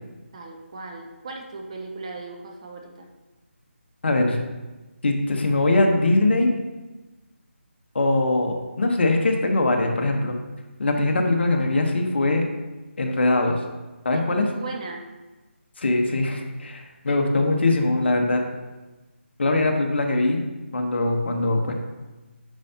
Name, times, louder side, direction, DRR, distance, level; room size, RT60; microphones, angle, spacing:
voice 1, 0.3-3.1 14.1-15.1, right 3 dB, 30° right, 2 dB, 0.7 m, -37 dB
voice 2, 4.0-4.4 5.0-6.5 7.9-10.4 10.8-12.4 13.0-13.6 14.0-14.5 15.8-18.4 19.4-20.4 20.7-21.7, left 2 dB, 55° left, 3 dB, 1.2 m, -21 dB
9.3 x 5.6 x 2.8 m, 1.2 s
figure-of-eight pair, 165°, 7 cm